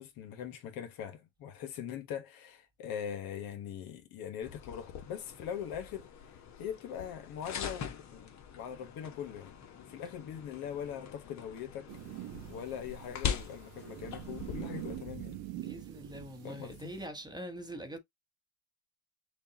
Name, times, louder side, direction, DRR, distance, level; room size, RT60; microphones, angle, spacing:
voice 1, 0.0-6.1 6.6-11.9 12.5-15.4 16.4-16.9, left 8 dB, 65° left, 1.4 m, -41 dB
sound 1, 4.4-15.0, left 8 dB, 45° left, 1.2 m, -43 dB
sound 2, 11.9-17.1, right 14 dB, 65° right, 0.9 m, -44 dB
voice 2, 15.5-18.0, right 1 dB, 10° right, 1.1 m, -43 dB
6.6 x 2.5 x 2.8 m
supercardioid pair, 95°, 39 cm